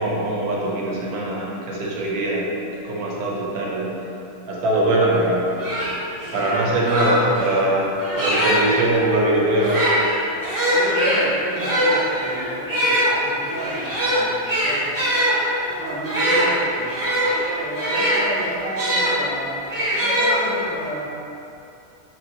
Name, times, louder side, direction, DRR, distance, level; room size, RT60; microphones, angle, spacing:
voice 1, 0.0-2.5 2.8-4.0 4.5-5.5 6.3-9.9, right 1 dB, 80° right, -4 dB, 1.1 m, -22 dB
sound 1, 5.2-5.3 5.6-8.8 9.5-19.1 19.7-20.8, equal, 35° right, 0.3 m, -22 dB
voice 2, 10.7-14.9 15.8-17.0 17.5-21.1, right 1 dB, 5° right, -14 dB, 1.1 m, -32 dB
3.0 x 2.9 x 2.7 m, 2.7 s
omnidirectional pair, 1.5 m